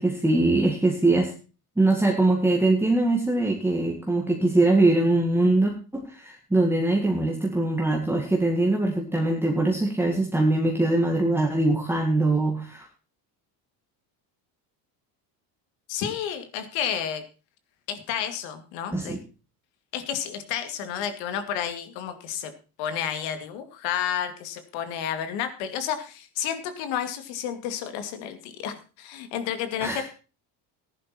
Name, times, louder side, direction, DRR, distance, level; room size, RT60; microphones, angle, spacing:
voice 1, 0.0-1.3 1.8-12.9 18.9-19.2 29.8-30.1, right 2 dB, 5° right, 0 dB, 1.9 m, -22 dB
voice 2, 15.9-17.2 17.9-19.2 19.9-22.5 22.8-30.1, left 9 dB, 85° left, 10 dB, 2.4 m, -31 dB
14.5 x 11.0 x 4.4 m, 0.34 s
cardioid pair, 140°, 43 cm